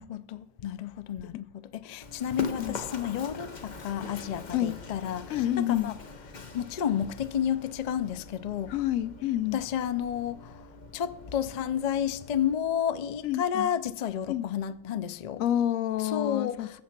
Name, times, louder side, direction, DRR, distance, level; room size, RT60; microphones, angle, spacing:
voice 1, 0.0-6.0 6.5-8.7 9.5-10.6 10.9-15.4 16.0-16.7, left 9 dB, 65° left, 0.4 m, -31 dB
Run, 2.0-12.5, left 3 dB, 35° left, 0.9 m, -43 dB
voice 2, 5.3-5.9 8.7-9.6 13.2-13.7 14.3-14.5 15.4-16.8, left 12 dB, 80° left, 1.0 m, -29 dB
13.5 x 7.4 x 5.9 m
omnidirectional pair, 1.4 m